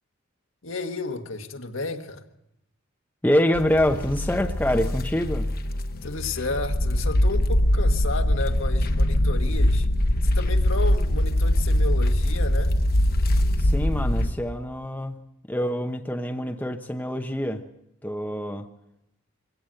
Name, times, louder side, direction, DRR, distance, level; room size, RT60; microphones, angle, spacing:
voice 1, 0.6-2.2 6.0-9.9 10.2-12.8, left 3 dB, 65° left, 1.6 m, -32 dB
voice 2, 3.2-5.5 13.6-15.2 15.5-17.6 18.0-18.7, equal, 10° left, 0.9 m, -25 dB
sound 1, 3.5-14.3, left 1 dB, 45° left, 1.1 m, -22 dB
23.5 x 17.0 x 7.8 m
head